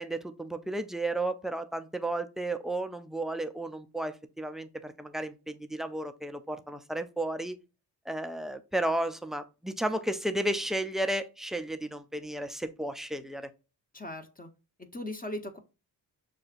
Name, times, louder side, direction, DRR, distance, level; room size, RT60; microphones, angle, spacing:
voice 1, 0.0-7.6 8.1-13.5, right 1 dB, ahead, 0.5 m, -33 dB
voice 2, 13.9-14.5 14.8-15.6, left 1 dB, 20° left, 0.9 m, -38 dB
6.3 x 2.3 x 2.5 m
supercardioid pair, 40°, 47 cm